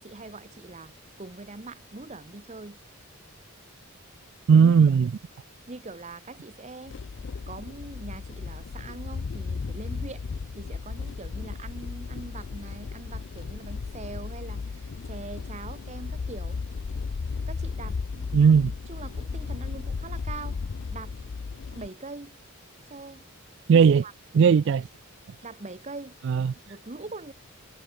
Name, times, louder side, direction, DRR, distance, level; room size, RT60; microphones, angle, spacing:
voice 1, 0.0-2.8 4.6-4.8 5.7-7.0 7.5-10.3 10.6-16.6 17.5-18.3 18.9-20.6 20.9-21.1 21.7-22.4 22.9-23.3 23.7-24.1 25.4-26.2 26.7-27.3, right 3 dB, 30° right, 0.8 m, -42 dB
voice 2, 4.5-5.1 18.3-18.7 23.7-24.0 24.3-24.9 26.3-26.5, right 6 dB, 55° right, 0.3 m, -17 dB
sound 1, 6.8-21.9, left 4 dB, 55° left, 0.4 m, -35 dB
head